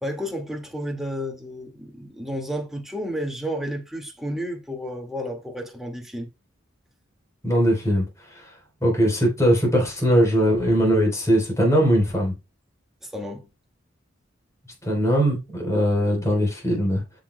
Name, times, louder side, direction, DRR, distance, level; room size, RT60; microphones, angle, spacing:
voice 1, 0.0-6.3 13.0-13.5, equal, ahead, 2.0 m, -31 dB
voice 2, 7.4-8.0 8.3-8.4 8.8-12.3 14.8-17.0, equal, 15° left, 3.9 m, -20 dB
13.5 x 6.3 x 2.2 m
head